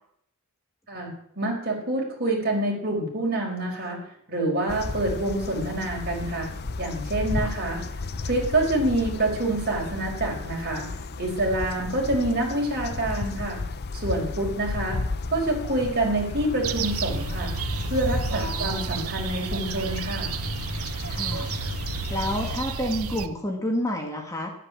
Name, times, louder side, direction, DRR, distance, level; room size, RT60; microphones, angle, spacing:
voice 1, 1.4-4.0 4.3-6.5 6.8-7.8 8.2-10.9 11.2-13.6 14.0-15.0 15.3-17.5 17.9-20.3, right 1 dB, 45° right, 0 dB, 4.9 m, -27 dB
sound 1, 4.7-22.6, left 3 dB, 45° left, 0.7 m, -33 dB
sound 2, 16.6-23.3, right 6 dB, 75° right, 1.0 m, -31 dB
voice 2, 18.3-19.0 21.1-21.5 22.1-24.5, left 1 dB, 15° left, 2 dB, 1.8 m, -30 dB
12.5 x 11.0 x 7.3 m, 0.70 s
head